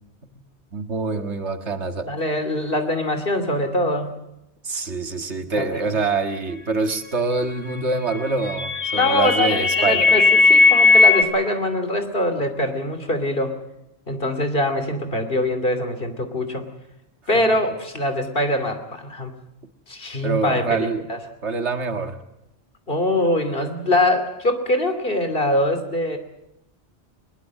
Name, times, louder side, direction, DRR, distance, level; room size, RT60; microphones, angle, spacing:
voice 1, 0.7-2.1 4.6-10.2 20.2-21.0 21.4-22.2, right 3 dB, 75° right, 7 dB, 2.0 m, -25 dB
voice 2, 2.1-4.1 5.5-5.9 8.9-13.6 14.1-16.7 17.3-19.3 19.9-21.2 22.9-26.2, left 1 dB, 50° left, 8 dB, 3.0 m, -23 dB
sound 1, 8.1-11.2, left 4 dB, 70° left, 2.8 m, -16 dB
21.5 x 21.0 x 7.5 m, 0.87 s
omnidirectional pair, 1.2 m